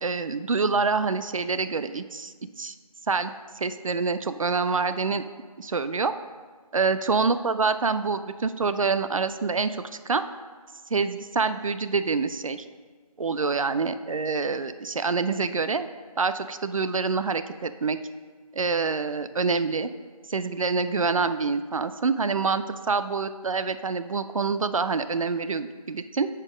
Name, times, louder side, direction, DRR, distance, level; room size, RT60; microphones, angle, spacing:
voice 1, 0.0-2.7 3.1-5.2 5.6-6.1 6.7-9.8 10.1-10.2 10.9-12.6 13.2-15.9 16.2-18.0 18.5-19.9 20.3-26.3, right 4 dB, 60° right, 11 dB, 0.4 m, -26 dB
7.0 x 4.3 x 5.0 m, 1.5 s
figure-of-eight pair, 165°, 19 cm